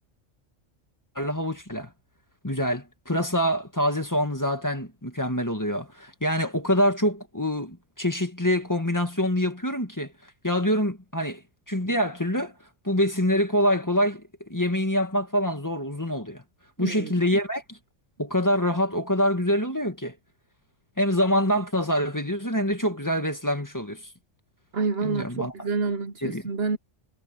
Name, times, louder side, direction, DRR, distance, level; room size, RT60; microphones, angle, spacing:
voice 1, 1.1-1.9 2.4-11.4 11.7-12.5 12.8-16.4 16.8-17.8 18.2-20.1 21.0-24.0 25.0-25.5 26.2-26.4, equal, 15° left, 1.8 m, -25 dB
voice 2, 16.8-17.1 24.7-26.8, right 4 dB, 60° right, 1.0 m, -28 dB
omnidirectional pair, 1.3 m